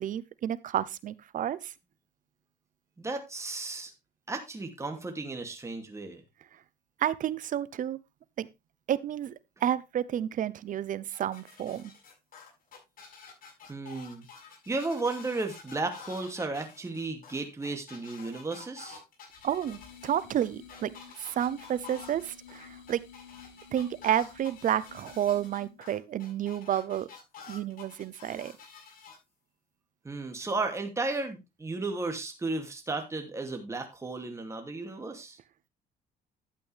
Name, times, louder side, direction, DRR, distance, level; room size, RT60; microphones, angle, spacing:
voice 1, 0.0-1.7 7.0-8.0 8.4-8.5 8.9-9.3 9.6-11.9 19.4-23.0 23.7-27.1 27.5-28.5, right 10 dB, 50° right, 0.8 m, -30 dB
voice 2, 3.0-3.9 4.3-6.2 13.7-14.3 14.7-19.0 30.0-35.4, right 3 dB, 15° right, 2.5 m, -34 dB
sound 1, 11.1-29.2, left 6 dB, 55° left, 6.8 m, -49 dB
sound 2, 19.3-25.8, left 7 dB, 90° left, 3.0 m, -52 dB
12.0 x 8.4 x 3.4 m
cardioid pair, 110°, 17 cm